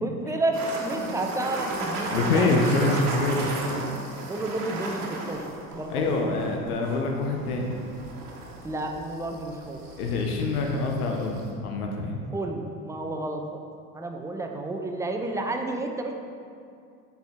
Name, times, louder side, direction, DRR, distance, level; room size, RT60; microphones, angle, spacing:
voice 1, 0.0-2.9 4.3-5.0 5.3-5.4 5.7-6.2 8.6-9.8 12.3-13.6 13.9-16.1, right 2 dB, 5° right, 3 dB, 0.4 m, -31 dB
sound 1, 0.5-11.5, right 2 dB, 80° right, 1.1 m, -35 dB
voice 2, 2.1-3.4 5.9-7.7 10.0-12.2, left 3 dB, 75° left, 1 dB, 0.9 m, -25 dB
7.5 x 4.6 x 3.5 m, 2.4 s
hypercardioid pair, 75°, 45 cm